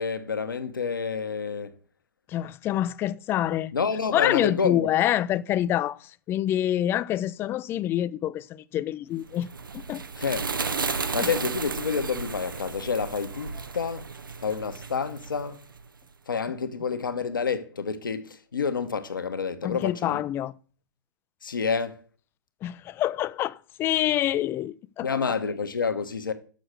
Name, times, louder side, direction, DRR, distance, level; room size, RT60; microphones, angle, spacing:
voice 1, 0.0-1.7 3.7-4.9 10.2-10.4 11.1-14.1 14.4-15.6 16.3-20.2 21.4-22.0 25.0-26.3, left 5 dB, 75° left, 1.1 m, -29 dB
voice 2, 2.3-3.7 4.1-9.5 9.7-10.0 11.2-11.3 19.6-20.5 22.6-25.1, left 12 dB, 20° left, 0.3 m, -26 dB
sound 1, 9.3-15.9, right 5 dB, 80° right, 0.7 m, -33 dB
6.6 x 6.3 x 6.4 m
figure-of-eight pair, 110°, 11 cm